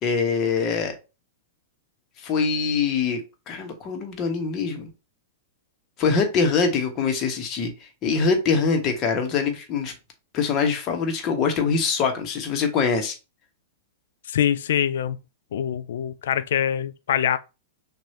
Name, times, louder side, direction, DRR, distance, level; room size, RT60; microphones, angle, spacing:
voice 1, 0.0-1.0 2.2-3.2 3.5-4.9 6.0-7.7 8.0-9.9 10.3-13.1, left 5 dB, 35° left, 1.3 m, -23 dB
voice 2, 14.3-15.2 15.5-17.4, left 9 dB, 65° left, 0.4 m, -24 dB
6.1 x 2.7 x 2.9 m
figure-of-eight pair, 100°, 0 cm